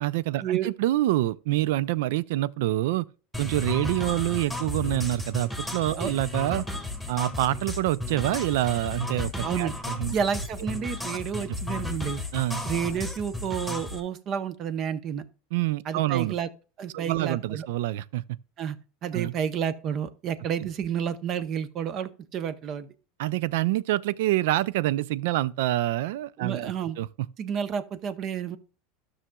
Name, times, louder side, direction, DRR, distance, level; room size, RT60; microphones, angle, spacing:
voice 1, 0.0-3.1 3.4-6.6 7.1-10.1 11.1-11.2 12.3-12.6 15.5-16.3 16.9-18.4 19.1-19.3 23.2-27.1, right 16 dB, 75° right, 0.3 m, -26 dB
sound 1, 3.3-14.0, left 2 dB, ahead, 1.6 m, -34 dB
voice 2, 9.4-9.7 10.1-12.2 12.6-15.2 15.9-16.5 16.8-17.7 18.6-18.8 19.0-22.9 26.4-27.0 27.4-28.6, right 8 dB, 40° right, 0.7 m, -30 dB
12.5 x 6.2 x 2.3 m
supercardioid pair, 125°, 0 cm